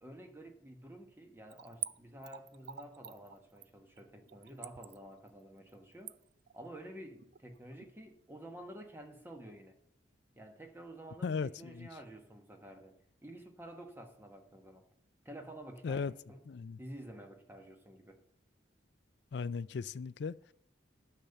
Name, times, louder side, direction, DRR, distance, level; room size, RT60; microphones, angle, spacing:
voice 1, 0.0-6.1 6.5-9.8 10.4-14.9 15.2-16.4 16.8-18.2, right 1 dB, 10° right, 1.2 m, -50 dB
Splash splatter / Trickle dribble, 1.5-7.9 8.2-8.3, right 13 dB, 55° right, 0.3 m, -47 dB
voice 2, 11.2-11.9 15.8-16.1 16.5-16.8 19.3-20.5, left 5 dB, 60° left, 0.4 m, -37 dB
10.5 x 6.8 x 6.9 m
head